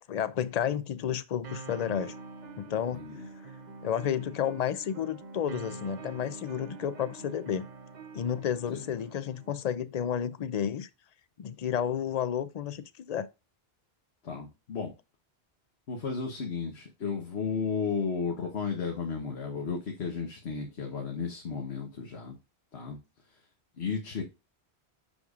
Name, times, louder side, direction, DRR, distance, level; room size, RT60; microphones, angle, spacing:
voice 1, 0.1-2.1 2.6-3.1 3.8-7.7 8.1-10.9 11.4-13.3, left 9 dB, 55° left, 0.5 m, -31 dB
sound 1, 1.4-9.5, right 4 dB, 50° right, 0.8 m, -46 dB
voice 2, 2.9-3.3 8.7-8.9 14.2-14.9 15.9-22.3 22.7-23.0 23.3-23.4 23.8-24.2, left 5 dB, 85° left, 1.4 m, -34 dB
6.4 x 6.1 x 2.4 m
omnidirectional pair, 1.1 m